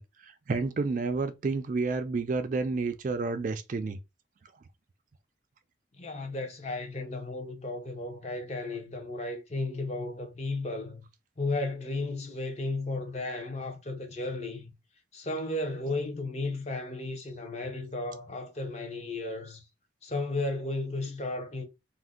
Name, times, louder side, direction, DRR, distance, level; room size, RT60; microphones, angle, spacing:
voice 1, 0.0-4.0, right 3 dB, 40° right, 0.3 m, -30 dB
voice 2, 6.0-11.0 11.4-14.7 15.1-19.6 20.0-21.6, left 2 dB, 35° left, 0.6 m, -34 dB
2.5 x 2.1 x 3.5 m
head